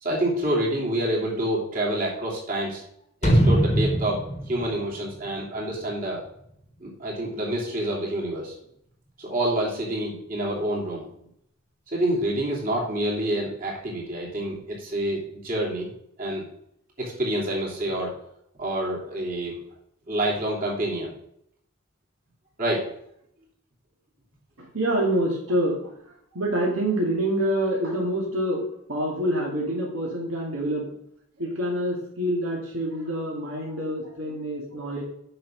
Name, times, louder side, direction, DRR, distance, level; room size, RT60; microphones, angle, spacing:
voice 1, 0.0-2.8 3.2-4.2 4.5-6.2 6.8-8.5 9.2-11.0 11.9-15.9 16.2-16.4 17.0-18.1 18.6-19.6 20.1-21.1 22.6-22.8, right 1 dB, 40° right, -4 dB, 3.2 m, -27 dB
sound 1, 3.2-6.0 6.4-6.5, right 1 dB, 30° left, 1.2 m, -23 dB
voice 2, 24.6-25.8 26.1-30.9 31.4-35.0, right 1 dB, 80° right, -2 dB, 2.5 m, -26 dB
7.7 x 6.3 x 5.3 m, 0.71 s
head